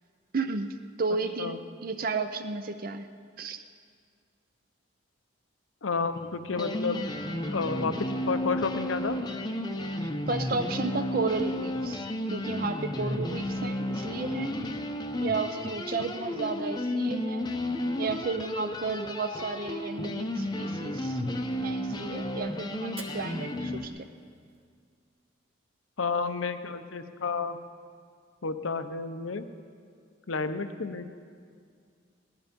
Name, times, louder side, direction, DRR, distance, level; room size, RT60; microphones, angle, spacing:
voice 1, 0.3-3.1 3.4-3.6 10.0-12.1 12.3-14.6 15.2-17.5 18.0-21.2 21.6-24.1, right 4 dB, 45° right, 8 dB, 0.5 m, -33 dB
voice 2, 5.8-7.0 7.5-9.2 26.0-27.6 28.4-29.5 30.3-31.1, left 4 dB, 80° left, 10 dB, 0.8 m, -31 dB
sound 1, 6.2-6.3 6.5-23.9, left 1 dB, 20° left, 0.6 m, -32 dB
Fire, 22.8-24.8, right 5 dB, 30° right, 1.1 m, -51 dB
17.5 x 11.5 x 5.3 m, 2.1 s
head